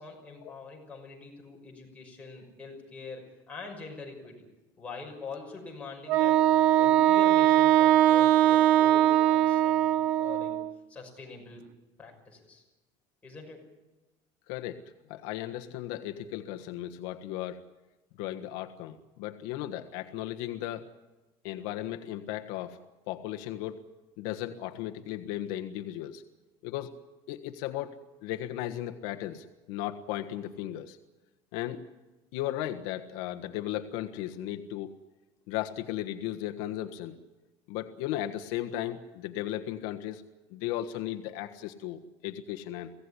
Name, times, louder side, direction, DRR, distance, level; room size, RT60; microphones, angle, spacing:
voice 1, 0.0-4.5 4.8-10.5 10.9-11.6 12.0-12.6 13.2-13.7, left 4 dB, 10° left, -1 dB, 6.0 m, -44 dB
Wind instrument woodwind instrument, 6.1-10.7, right 12 dB, 85° right, 1.0 m, -21 dB
voice 2, 14.5-14.8 15.1-17.6 18.2-20.8 21.4-22.8 23.1-23.8 24.2-26.2 26.6-26.9 27.3-28.0 28.2-31.0 31.5-31.8 32.3-34.9 35.5-37.2 37.7-40.2 40.5-42.9, left 13 dB, 90° left, 5 dB, 1.5 m, -36 dB
24.0 x 17.0 x 10.0 m, 1.1 s
cardioid pair, 170°, 12 cm